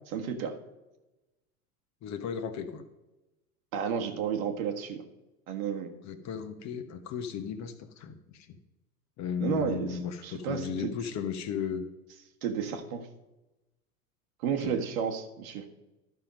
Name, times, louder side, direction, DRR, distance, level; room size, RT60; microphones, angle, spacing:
voice 1, 0.1-0.6 3.7-5.0 5.5-5.9 9.4-10.9 12.4-13.1 14.4-15.6, right 7 dB, 65° right, 4 dB, 1.5 m, -32 dB
voice 2, 2.0-2.8 6.0-8.5 9.2-11.9 14.6-14.7, left 7 dB, 35° left, 8 dB, 1.1 m, -35 dB
12.5 x 5.8 x 5.2 m, 1.0 s
hypercardioid pair, 85°, 46 cm